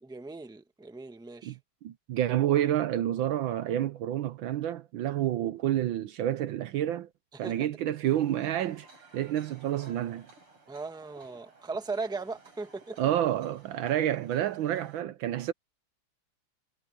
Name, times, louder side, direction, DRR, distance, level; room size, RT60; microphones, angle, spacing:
voice 1, 0.0-1.6 7.4-7.7 10.7-13.1, right 3 dB, ahead, 1.1 m, -38 dB
voice 2, 1.8-7.1 7.4-8.9 9.1-10.2 13.0-15.5, right 12 dB, 70° right, 1.4 m, -29 dB
sound 1, 8.0-15.0, right 3 dB, 85° right, 8.8 m, -56 dB
omnidirectional pair, 2.4 m